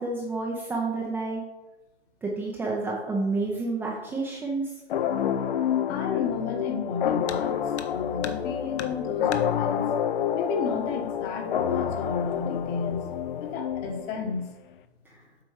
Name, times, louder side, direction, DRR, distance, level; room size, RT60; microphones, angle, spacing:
voice 1, 0.0-1.4 2.2-4.7, right 3 dB, 5° right, -3 dB, 0.5 m, -29 dB
sound 1, 4.9-14.3, left 9 dB, 55° left, 0.6 m, -28 dB
voice 2, 5.9-9.8 10.3-14.4, left 5 dB, 25° left, 5 dB, 1.1 m, -32 dB
sound 2, 7.2-7.5 7.8-8.5 8.8-9.5 10.7-10.8 11.2-11.3 12.1-12.5 12.8-13.2, left 6 dB, 75° left, 0.9 m, -39 dB
7.8 x 5.2 x 4.7 m, 1.1 s
hypercardioid pair, 130°, 34 cm